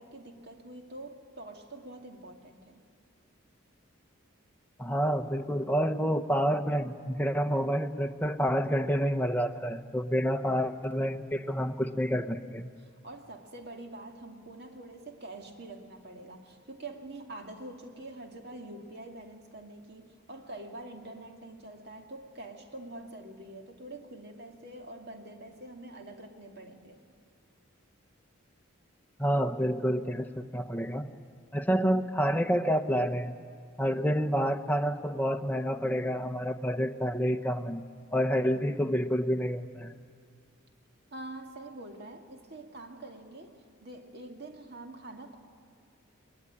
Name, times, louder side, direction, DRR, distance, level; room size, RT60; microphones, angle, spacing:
voice 1, 0.0-2.8 12.8-27.0 41.1-45.4, right 2 dB, 50° right, 4 dB, 2.3 m, -45 dB
voice 2, 4.8-12.6 29.2-31.1 31.5-33.3 33.8-37.8 38.1-39.9, equal, 10° left, 6 dB, 0.8 m, -28 dB
21.0 x 21.0 x 10.0 m, 2.2 s
head